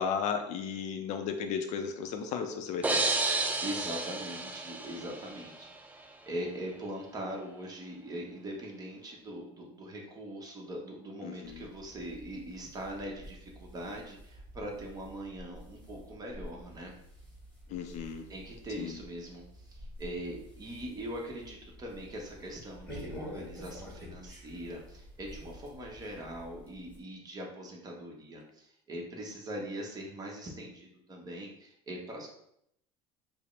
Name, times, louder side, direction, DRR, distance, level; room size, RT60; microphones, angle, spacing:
voice 1, 0.0-3.0 11.2-11.6 17.7-18.3 18.8-19.0, left 6 dB, 50° left, 6 dB, 0.4 m, -34 dB
sound 1, 2.8-5.6, right 3 dB, 10° right, 0.4 m, -31 dB
voice 2, 3.4-16.9 18.3-32.3, right 1 dB, 25° right, -1 dB, 1.0 m, -41 dB
sound 2, 11.4-27.0, equal, 10° left, 1.3 m, -49 dB
4.7 x 2.0 x 3.2 m, 0.74 s
supercardioid pair, 120°, 15 cm